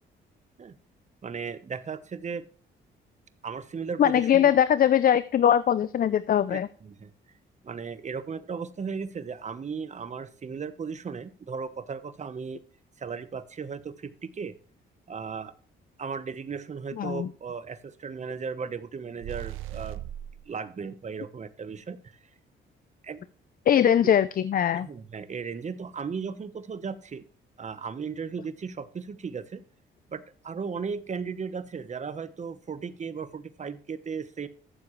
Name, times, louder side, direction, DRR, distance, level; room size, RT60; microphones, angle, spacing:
voice 1, 1.2-2.5 3.4-4.5 6.5-7.1 7.6-12.6 13.0-14.6 15.1-15.5 16.0-20.0 20.4-22.0 23.0-23.2 24.7-27.2 27.6-29.6 30.1-34.5, right 5 dB, 35° right, 13 dB, 1.1 m, -36 dB
voice 2, 4.0-6.7 17.0-17.3 23.7-24.9, left 9 dB, 45° left, 15 dB, 0.5 m, -21 dB
sound 1, 19.2-20.4, right 13 dB, 90° right, 0.7 m, -37 dB
14.0 x 7.2 x 3.2 m, 0.42 s
cardioid pair, 90°, 20 cm